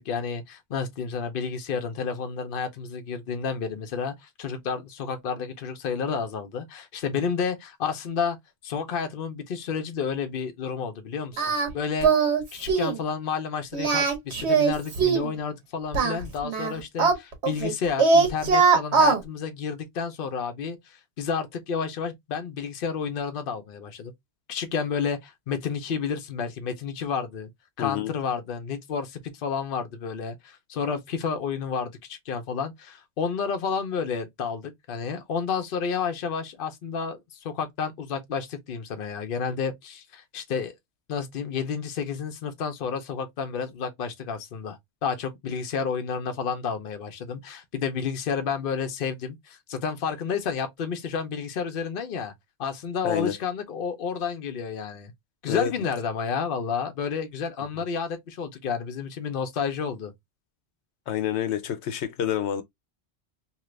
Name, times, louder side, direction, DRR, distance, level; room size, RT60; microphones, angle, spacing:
voice 1, 0.0-8.4 8.6-11.4 11.7-12.3 12.5-24.1 24.5-27.5 27.8-40.7 41.1-52.3 52.6-55.1 55.4-60.1, left 6 dB, 60° left, 0.8 m, -31 dB
Singing, 11.4-11.7 12.0-12.4 12.7-13.0 13.7-15.3 15.9-17.7 18.0-19.2, right 5 dB, 80° right, 1.3 m, -21 dB
voice 2, 27.8-28.1 53.0-53.3 55.5-55.9 57.7-57.8 61.1-62.6, left 10 dB, 85° left, 0.9 m, -28 dB
2.9 x 2.4 x 3.1 m
omnidirectional pair, 1.1 m